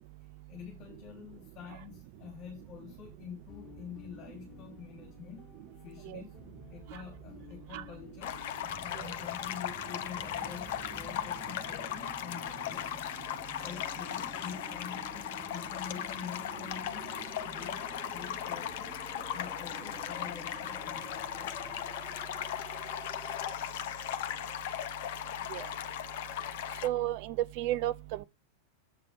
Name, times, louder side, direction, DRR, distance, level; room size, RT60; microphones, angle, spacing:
voice 1, 0.5-5.5 5.8-6.4 6.7-8.4 8.8-13.1 13.6-17.2 17.4-19.0 19.3-21.7, left 8 dB, 35° left, 3.4 m, -47 dB
sound 1, 3.5-11.1, left 6 dB, 15° left, 3.4 m, -55 dB
sound 2, 8.2-26.9, left 10 dB, 50° left, 0.8 m, -38 dB
sound 3, 8.6-23.5, right 1 dB, 5° right, 0.7 m, -52 dB
voice 2, 26.8-28.2, right 14 dB, 45° right, 0.8 m, -32 dB
8.0 x 6.8 x 4.5 m
figure-of-eight pair, 90°, 0 cm